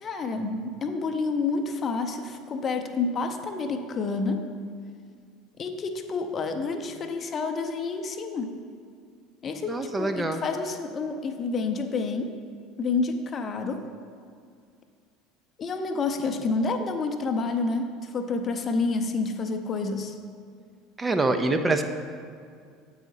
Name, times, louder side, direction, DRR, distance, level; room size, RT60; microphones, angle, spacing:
voice 1, 0.0-4.5 5.6-8.5 9.4-12.3 12.8-13.9 15.6-20.2, left 4 dB, 35° left, 6 dB, 0.6 m, -29 dB
voice 2, 9.7-10.4 21.0-21.8, right 2 dB, 20° right, 6 dB, 0.4 m, -25 dB
8.0 x 4.8 x 4.1 m, 2.2 s
figure-of-eight pair, 70°, 0 cm